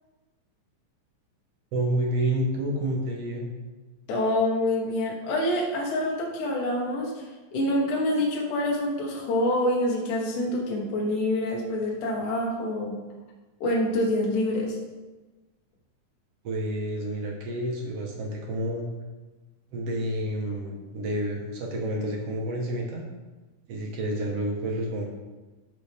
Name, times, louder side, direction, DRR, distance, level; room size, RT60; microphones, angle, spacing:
voice 1, 1.7-3.5 16.4-18.9 19.7-23.0 23.7-25.1, right 1 dB, 60° right, 0 dB, 1.9 m, -29 dB
voice 2, 4.1-7.2 7.5-13.0 13.6-14.8, left 1 dB, 70° left, -3 dB, 2.8 m, -26 dB
12.5 x 5.5 x 3.5 m, 1.2 s
omnidirectional pair, 3.9 m